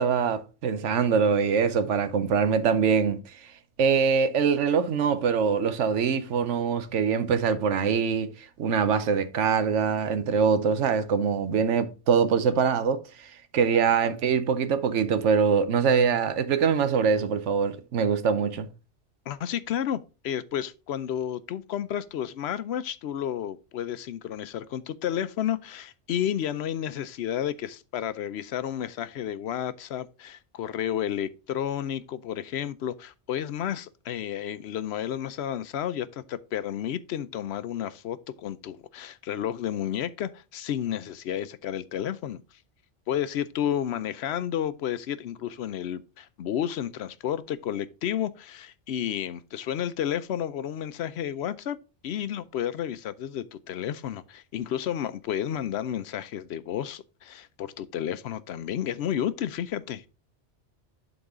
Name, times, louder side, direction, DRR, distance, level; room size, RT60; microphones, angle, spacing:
voice 1, 0.0-3.2 3.8-8.3 8.6-13.0 13.5-18.7, right 6 dB, 85° right, 1.1 m, -23 dB
voice 2, 19.3-42.4 43.1-51.8 52.0-60.0, left 10 dB, 70° left, 0.8 m, -31 dB
11.5 x 4.0 x 3.6 m
omnidirectional pair, 1.2 m